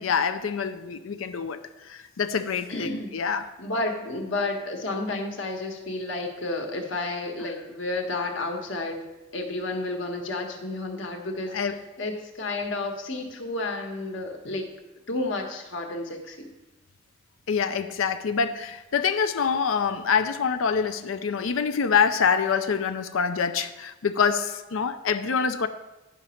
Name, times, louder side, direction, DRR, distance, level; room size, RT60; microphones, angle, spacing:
voice 1, 0.0-1.6 1.9-3.5 11.5-11.8 17.5-25.7, left 6 dB, 90° left, 9 dB, 0.5 m, -25 dB
voice 2, 2.7-3.2 3.6-9.0 9.3-14.7 15.1-16.5, left 2 dB, 70° left, 3 dB, 1.3 m, -31 dB
10.5 x 5.1 x 5.7 m, 1.1 s
head